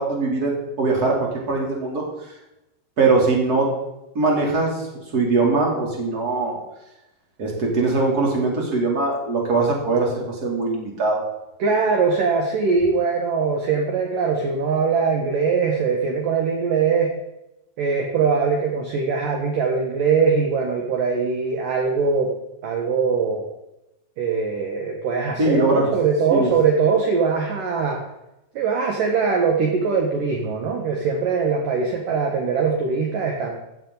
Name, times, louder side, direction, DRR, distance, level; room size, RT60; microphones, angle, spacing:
voice 1, 0.0-2.0 3.0-3.7 4.1-4.9 5.1-6.6 7.4-11.2 25.4-25.9 26.3-26.5, right 3 dB, 25° right, -1 dB, 3.2 m, -21 dB
voice 2, 11.6-17.1 17.8-22.3 22.6-23.5 24.2-28.0 28.6-33.5, right 5 dB, 60° right, 2 dB, 2.6 m, -21 dB
15.5 x 11.0 x 4.0 m, 0.91 s
omnidirectional pair, 4.9 m